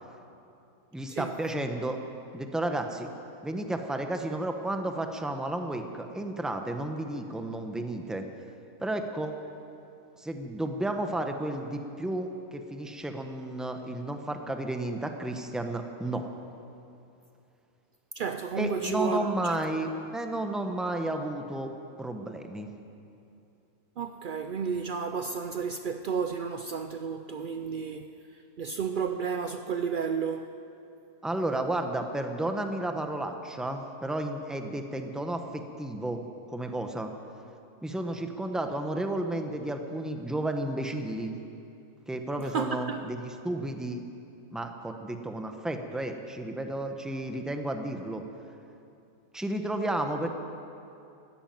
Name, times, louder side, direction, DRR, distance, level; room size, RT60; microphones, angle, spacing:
voice 1, 0.9-2.0 2.3-3.1 3.4-8.3 8.8-9.3 10.2-16.2 18.6-21.7 22.0-22.7 31.2-36.2 36.5-37.1 37.8-41.4 42.1-44.0 44.5-48.2 49.3-50.3, right 1 dB, ahead, 0.7 m, -32 dB
voice 2, 18.2-19.6 24.0-28.1 28.6-30.5 38.2-38.4 42.4-43.1, right 6 dB, 85° right, 0.4 m, -32 dB
13.5 x 12.0 x 9.2 m
omnidirectional pair, 1.5 m